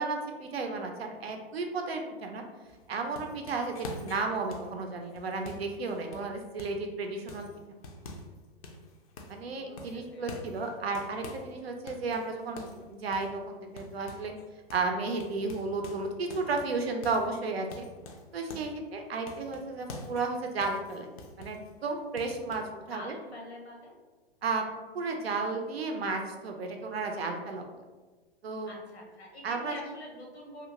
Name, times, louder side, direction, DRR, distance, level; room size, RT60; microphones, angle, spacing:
voice 1, 0.0-2.4 2.9-7.5 9.3-14.3 14.7-17.9 18.3-21.1 21.4-23.1 24.4-24.7 24.9-27.6 28.4-28.7 29.4-29.7, right 3 dB, 75° right, 3 dB, 0.6 m, -33 dB
sound 1, 2.7-6.9 7.3-8.4 8.6-9.5 9.8-11.5 11.9-14.4 14.7-14.9 15.2-18.8 19.3-21.7 22.2-22.6, left 2 dB, 40° left, 0.4 m, -46 dB
voice 2, 9.6-10.8 16.8-17.6 22.9-23.9 28.6-30.6, left 1 dB, 85° left, 0 dB, 0.9 m, -47 dB
2.5 x 2.4 x 2.8 m, 1.3 s
figure-of-eight pair, 110°, 31 cm